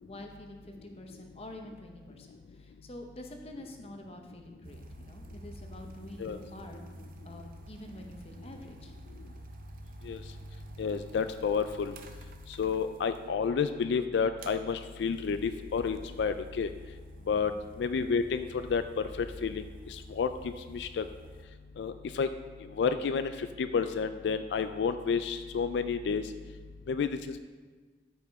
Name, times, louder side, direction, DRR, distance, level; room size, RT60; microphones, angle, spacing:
voice 1, 0.0-8.9 17.3-17.6, left 1 dB, 35° left, 3 dB, 0.8 m, -47 dB
sound 1, 4.6-13.3 14.4-21.4, right 1 dB, 50° right, 0.6 m, -50 dB
voice 2, 10.8-11.9 12.6-16.7 17.3-17.5 17.8-18.4 18.7-18.8 19.4-19.6 19.9-21.0 21.8-22.3 22.8-26.2 26.9-27.1, left 6 dB, 85° left, 10 dB, 0.3 m, -30 dB
13.0 x 5.0 x 3.5 m, 1.4 s
head